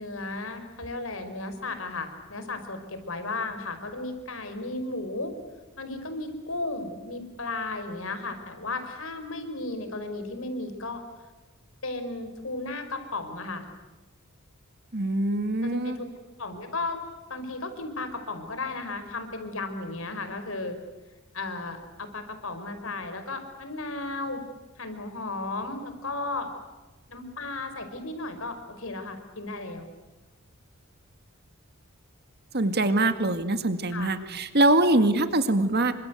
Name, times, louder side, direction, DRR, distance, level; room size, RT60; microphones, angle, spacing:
voice 1, 0.0-5.3 5.8-11.0 11.8-13.6 15.6-16.1 16.4-17.0 17.3-20.8 21.3-24.4 24.8-26.5 27.1-29.9 33.9-34.1, left 2 dB, 70° left, 8 dB, 5.0 m, -34 dB
voice 2, 14.9-16.0 32.5-35.9, right 2 dB, 50° right, 9 dB, 2.1 m, -23 dB
28.5 x 25.5 x 8.1 m, 1.2 s
head